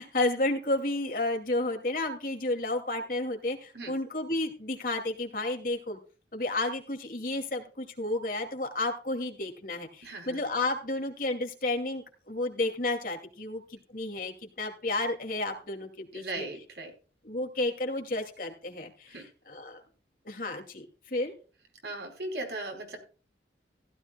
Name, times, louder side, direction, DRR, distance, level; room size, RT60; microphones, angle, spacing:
voice 1, 0.0-6.0 6.3-16.5 17.2-19.1 19.5-19.8 20.3-20.8 21.1-21.3, left 2 dB, 50° left, 3 dB, 2.6 m, -31 dB
voice 2, 10.0-10.4 16.1-16.9 19.1-19.2 21.8-23.0, right 2 dB, 75° right, 3 dB, 4.6 m, -38 dB
15.5 x 13.0 x 2.3 m, 0.36 s
head